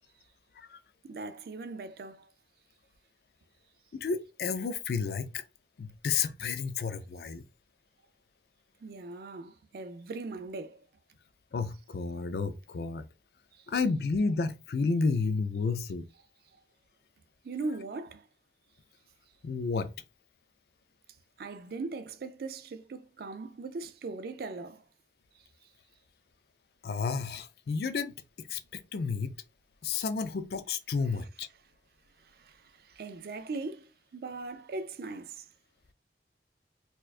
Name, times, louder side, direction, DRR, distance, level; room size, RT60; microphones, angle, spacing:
voice 1, 1.0-2.3 8.8-10.9 13.5-13.7 17.4-18.3 21.4-24.8 32.2-35.5, right 3 dB, 55° right, 0.4 m, -40 dB
voice 2, 3.9-5.4 5.8-7.4 11.5-13.0 13.7-16.1 19.4-19.9 26.8-28.1 28.5-29.3 29.8-31.5, left 4 dB, 60° left, 0.4 m, -31 dB
4.3 x 2.3 x 2.4 m
head